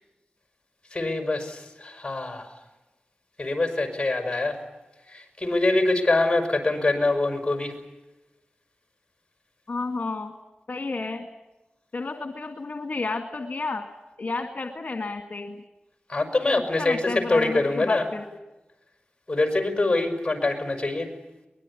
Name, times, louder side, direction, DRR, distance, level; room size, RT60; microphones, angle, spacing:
voice 1, 0.9-2.5 3.4-4.6 5.1-7.7 16.1-18.1 19.3-21.1, left 2 dB, 25° left, 6 dB, 5.9 m, -24 dB
voice 2, 9.7-10.3 10.7-11.3 11.9-13.9 14.2-15.6 16.8-18.2, left 3 dB, 60° left, 5 dB, 2.0 m, -31 dB
23.5 x 21.0 x 9.8 m, 1.0 s
wide cardioid pair, 80°, 3 cm